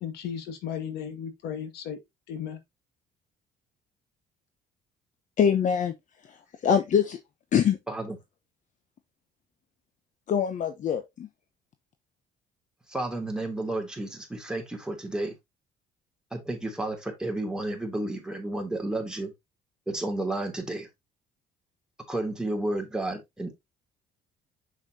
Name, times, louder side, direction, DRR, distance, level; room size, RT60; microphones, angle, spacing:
voice 1, 0.0-2.0 2.3-2.6, left 8 dB, 75° left, 1.9 m, -35 dB
voice 2, 5.4-5.9 6.6-7.2 7.5-7.8 10.3-11.3, left 8 dB, 50° left, 0.9 m, -23 dB
voice 3, 7.9-8.2 12.9-15.3 16.3-19.3 19.9-20.9 22.1-23.5, right 2 dB, 5° right, 3.0 m, -31 dB
7.3 x 6.3 x 2.8 m
cardioid pair, 110°, 17 cm